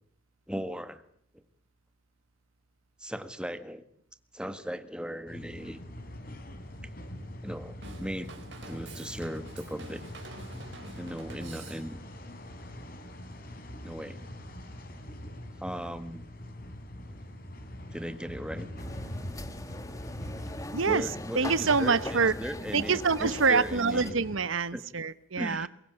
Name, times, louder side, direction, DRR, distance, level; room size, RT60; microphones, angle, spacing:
voice 1, 0.5-1.0 1.3-1.4 3.0-3.8 4.3-5.8 7.4-8.3 8.7-10.0 10.5-10.6 11.0-12.0 13.8-14.2 15.6-16.3 17.1-17.2 17.9-18.7 20.5-24.2 24.7-24.8 25.4-25.7, equal, 5° right, 1.7 m, -37 dB
sound 1, 5.3-24.4, left 1 dB, 45° left, 4.3 m, -43 dB
Drum kit / Drum, 7.8-12.2, right 2 dB, 60° right, 4.4 m, -47 dB
sound 2, 18.8-24.1, left 2 dB, 15° left, 1.4 m, -41 dB
voice 2, 20.7-21.1 21.3-22.3 22.7-25.7, right 4 dB, 80° right, 1.0 m, -26 dB
23.5 x 22.0 x 9.0 m
head